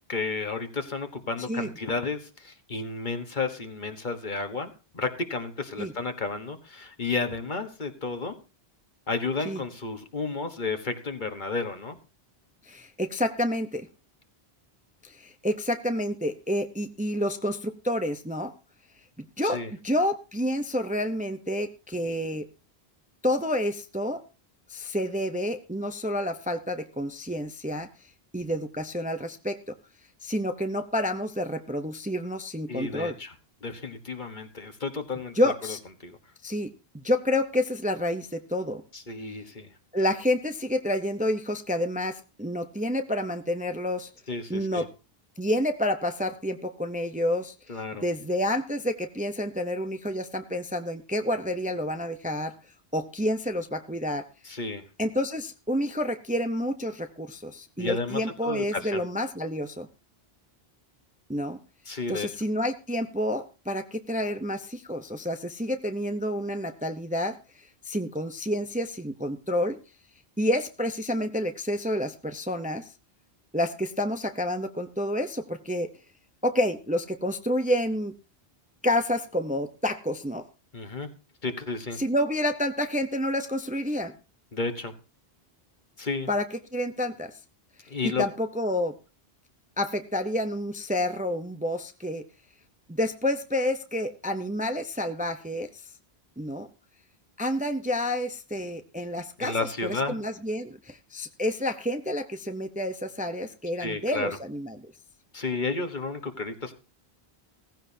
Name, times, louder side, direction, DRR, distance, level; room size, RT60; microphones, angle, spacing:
voice 1, 0.1-8.4 9.1-12.0 19.4-19.7 32.7-33.3 33.6-35.8 36.0-36.2 38.9-39.7 44.3-44.9 47.7-48.1 54.4-54.8 57.8-59.0 61.9-62.3 80.7-81.1 81.4-82.0 84.5-84.9 86.0-86.3 87.9-88.2 99.4-100.1 103.8-104.3 105.3-106.7, left 3 dB, 50° left, 7 dB, 1.5 m, -32 dB
voice 2, 12.7-13.9 15.0-18.5 19.2-22.5 23.2-24.2 24.7-27.9 28.3-29.7 30.2-33.2 35.3-35.8 36.4-38.8 39.9-44.1 44.5-44.9 45.4-52.5 52.9-54.3 55.0-59.9 61.3-61.6 62.1-69.8 70.4-72.9 73.5-75.9 76.4-78.1 78.8-80.4 82.0-84.1 86.3-87.4 87.8-89.0 89.8-92.2 92.9-95.7 96.4-96.7 97.4-99.5 99.8-104.9, left 1 dB, 10° right, 7 dB, 0.7 m, -29 dB
16.5 x 15.0 x 2.8 m, 0.31 s
omnidirectional pair, 1.0 m